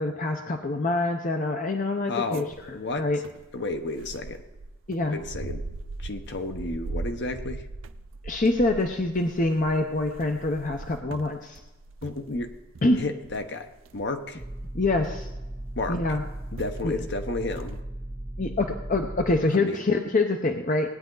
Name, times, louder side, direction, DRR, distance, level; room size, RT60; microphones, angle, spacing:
voice 1, 0.0-3.2 4.9-5.2 8.2-11.6 12.8-13.0 14.7-15.3 15.9-16.2 16.8-16.9 18.4-20.9, left 2 dB, 40° left, 4 dB, 0.8 m, -25 dB
voice 2, 2.1-3.2 3.5-4.5 5.1-5.6 6.0-7.7 12.0-12.5 13.0-14.4 15.8-16.0 16.5-17.8 19.5-19.8, left 2 dB, 60° left, 6 dB, 1.1 m, -32 dB
sound 1, 2.3-15.5 16.2-16.3 16.6-16.8 17.2-17.8, right 2 dB, 75° right, 0.6 m, -40 dB
sound 2, 14.4-19.4, right 1 dB, 10° right, 0.5 m, -37 dB
18.5 x 9.4 x 3.9 m, 1.1 s
head